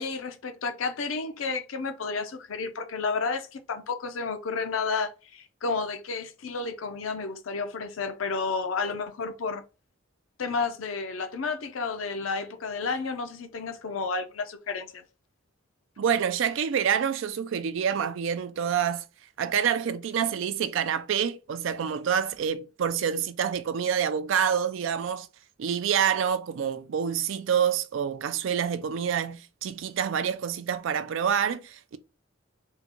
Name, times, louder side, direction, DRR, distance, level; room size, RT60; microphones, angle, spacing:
voice 1, 0.0-9.6 10.4-15.0, left 4 dB, 90° left, 0.6 m, -31 dB
voice 2, 16.0-19.0 19.4-25.3 25.6-32.0, right 8 dB, 70° right, 0.4 m, -27 dB
3.6 x 2.2 x 3.0 m
head